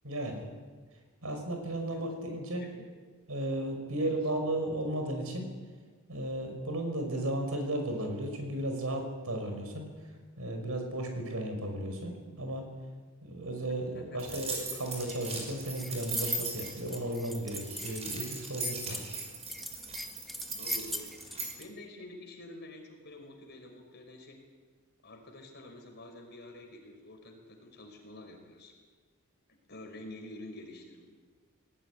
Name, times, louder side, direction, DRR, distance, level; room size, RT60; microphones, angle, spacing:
voice 1, 0.0-0.5 1.2-2.6 3.3-5.5 6.1-9.8 10.4-12.7 13.2-19.3, right 1 dB, 80° right, 4 dB, 5.5 m, -35 dB
voice 2, 2.6-2.9 4.0-4.2 13.9-14.4 20.6-21.1 21.6-24.5 25.0-28.7 29.7-31.0, left 1 dB, 50° left, 2 dB, 5.2 m, -48 dB
sound 1, 14.2-21.5, right 3 dB, 30° right, 5.5 m, -38 dB
sound 2, 14.3-21.7, equal, ahead, 1.4 m, -43 dB
20.0 x 18.0 x 10.0 m, 1.5 s
head